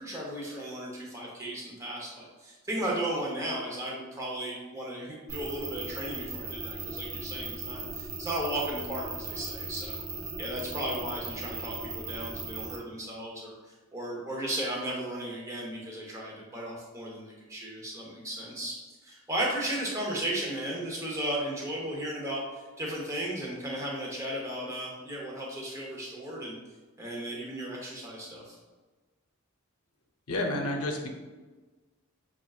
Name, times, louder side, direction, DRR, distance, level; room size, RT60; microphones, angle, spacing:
voice 1, 0.0-10.0 10.4-13.5 13.9-18.7 19.0-26.6 27.0-28.6, right 1 dB, 15° right, -3 dB, 0.7 m, -35 dB
sound 1, 5.3-12.8, right 3 dB, 65° right, 0.6 m, -38 dB
voice 2, 30.3-31.1, left 1 dB, 80° left, 2 dB, 0.6 m, -30 dB
5.7 x 2.4 x 2.3 m, 1.3 s
head